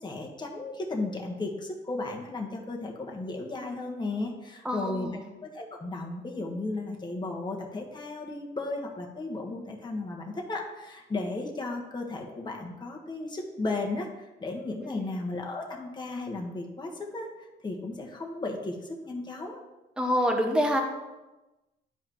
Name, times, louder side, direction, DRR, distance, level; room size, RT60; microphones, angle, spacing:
voice 1, 0.0-5.1 5.4-17.3 17.6-19.6, left 2 dB, 20° left, 0 dB, 1.3 m, -35 dB
voice 2, 4.6-5.3 14.8-15.1 20.0-20.8, equal, 5° right, 2 dB, 0.9 m, -27 dB
10.5 x 5.0 x 3.0 m, 1.1 s
cardioid pair, 90°, 20 cm